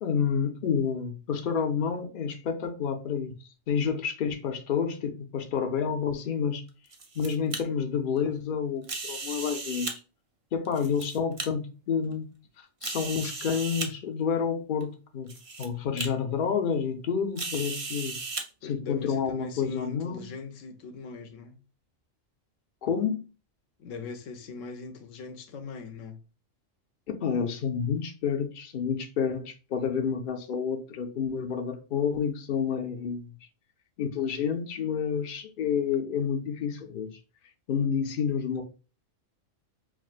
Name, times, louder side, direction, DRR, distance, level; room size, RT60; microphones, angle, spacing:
voice 1, 0.0-3.4 3.7-6.6 7.2-9.9 10.5-12.3 12.8-18.2 18.6-20.3 22.8-23.3 27.1-33.3 34.0-37.1 37.7-38.6, left 6 dB, 55° left, 0.6 m, -29 dB
sound 1, 6.7-7.6 8.8-9.9 10.6-11.5 12.1-12.2 12.8-13.9 14.8-14.9 15.3-15.7 16.0-16.1 17.4-18.4, right 3 dB, 40° right, 0.4 m, -36 dB
voice 2, 18.6-21.6 23.8-26.2, left 5 dB, 75° left, 1.0 m, -41 dB
5.8 x 2.4 x 2.4 m
omnidirectional pair, 1.4 m